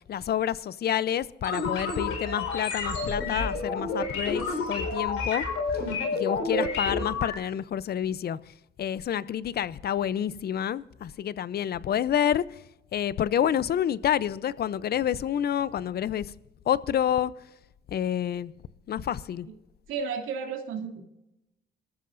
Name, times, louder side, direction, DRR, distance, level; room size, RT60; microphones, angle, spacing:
voice 1, 0.1-5.4 6.1-8.4 8.8-12.4 12.9-16.3 16.7-17.3 17.9-18.5 18.9-19.5, left 10 dB, 55° left, 0.6 m, -28 dB
sound 1, 1.4-7.3, left 3 dB, 85° left, 4.4 m, -30 dB
voice 2, 19.9-21.0, right 6 dB, 85° right, 2.6 m, -32 dB
24.0 x 14.0 x 2.6 m
cardioid pair, 90°, 20 cm